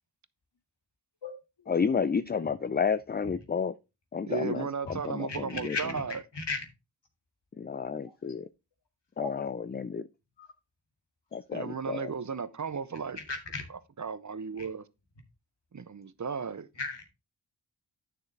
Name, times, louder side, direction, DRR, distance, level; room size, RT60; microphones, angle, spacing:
voice 1, 1.7-3.7 4.1-5.8 7.6-8.5 9.2-10.1 11.3-12.1, left 6 dB, 25° left, 0.3 m, -31 dB
voice 2, 4.2-6.2 11.5-13.2 13.7-14.9 15.7-16.7, right 6 dB, 40° right, 0.7 m, -35 dB
voice 3, 5.3-5.8 6.3-6.6 9.2-9.3 10.4-10.5 13.3-13.6 16.8-17.0, left 4 dB, 65° left, 2.2 m, -35 dB
9.6 x 6.5 x 3.3 m
wide cardioid pair, 70°, 45 cm